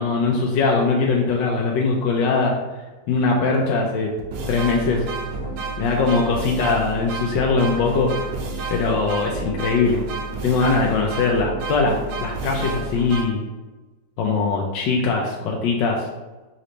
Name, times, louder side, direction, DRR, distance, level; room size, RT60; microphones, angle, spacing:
voice 1, 0.0-2.6 3.1-4.1 4.5-5.0 5.8-8.1 8.7-10.0 10.4-12.0 12.2-13.4 14.2-16.1, left 4 dB, 80° left, -1 dB, 1.3 m, -21 dB
sound 1, 3.5-3.6 4.2-13.2, right 3 dB, 80° right, 1.4 m, -30 dB
4.1 x 3.9 x 3.2 m, 1.2 s
omnidirectional pair, 2.0 m